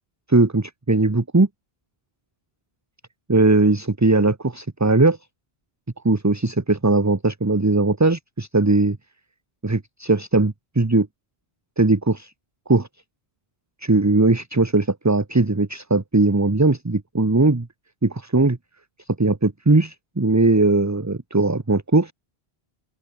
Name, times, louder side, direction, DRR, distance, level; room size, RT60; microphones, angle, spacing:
voice 1, 0.3-1.5 3.3-5.2 6.0-9.0 9.6-11.1 11.8-12.3 12.7-12.9 13.8-17.7 18.0-18.6 19.2-22.1, right 2 dB, 15° right, 0.9 m, -19 dB
open air
omnidirectional pair, 1.1 m